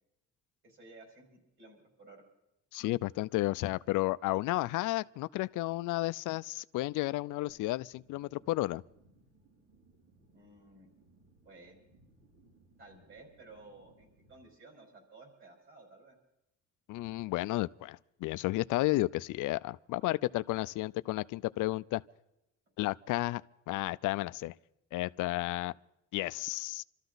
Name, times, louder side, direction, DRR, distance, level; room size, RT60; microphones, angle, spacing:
voice 1, 0.6-2.2 10.3-10.9 11.4-11.8 12.8-16.2, right 3 dB, 45° right, 5.2 m, -55 dB
voice 2, 2.7-8.8 16.9-22.0 22.8-23.4 23.7-24.5 24.9-25.7 26.1-26.8, left 18 dB, 85° left, 0.5 m, -32 dB
sound 1, 7.5-14.4, right 2 dB, 60° right, 5.4 m, -65 dB
26.5 x 13.5 x 4.0 m
cardioid pair, 180°, 30 cm